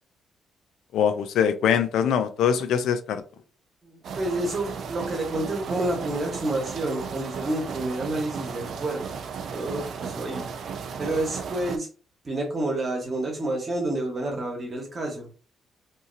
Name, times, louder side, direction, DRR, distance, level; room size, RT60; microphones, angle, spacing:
voice 1, 0.9-3.2, left 8 dB, 80° left, 0.4 m, -23 dB
voice 2, 3.8-9.2 9.5-10.5 11.0-11.9 12.2-15.3, right 1 dB, 35° right, 1.1 m, -29 dB
sound 1, 4.0-11.8, right 6 dB, 65° right, 0.4 m, -35 dB
2.8 x 2.6 x 2.6 m
cardioid pair, 90°, 0 cm